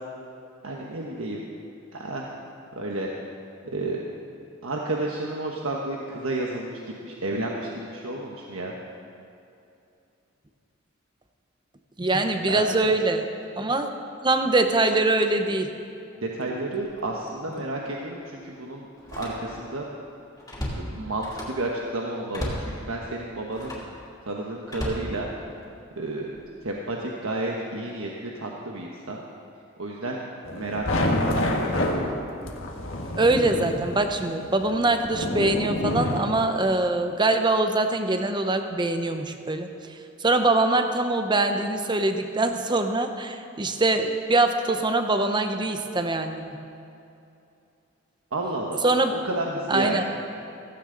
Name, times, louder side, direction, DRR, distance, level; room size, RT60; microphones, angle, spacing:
voice 1, 0.6-1.5 1.9-2.3 2.7-3.1 3.6-4.1 4.6-8.7 12.5-12.7 16.1-19.8 20.6-24.0 24.3-25.3 26.0-26.4 26.6-29.2 29.8-31.7 48.3-48.8 49.1-50.0, right 2 dB, 90° right, -1 dB, 1.2 m, -31 dB
voice 2, 12.0-13.3 13.6-13.9 14.2-15.7 33.2-46.6 48.8-49.1 49.7-50.0, right 2 dB, 20° right, 7 dB, 0.8 m, -23 dB
Slam, 16.9-17.1 17.5-17.6 19.0-19.8 20.1-21.7 22.3-22.8 23.5-24.0 24.7-25.8 26.3-26.7, equal, 15° left, 3.0 m, -35 dB
sound 1, 30.4-36.7, left 1 dB, 70° left, 1.6 m, -28 dB
15.5 x 15.5 x 3.9 m, 2.7 s
head